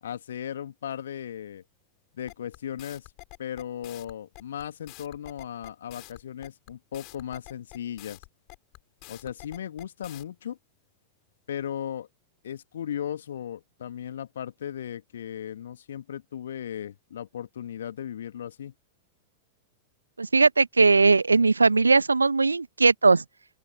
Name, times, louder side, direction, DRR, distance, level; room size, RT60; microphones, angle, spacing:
voice 1, 0.0-1.6 2.1-3.1 3.4-8.2 9.1-10.6 11.5-12.1 12.4-18.7, left 9 dB, 65° left, 2.3 m, -36 dB
sound 1, 2.3-10.2, left 28 dB, 45° left, 7.0 m, -47 dB
voice 2, 20.2-23.2, right 3 dB, 80° right, 1.2 m, -19 dB
open air
figure-of-eight pair, 90°, 0 cm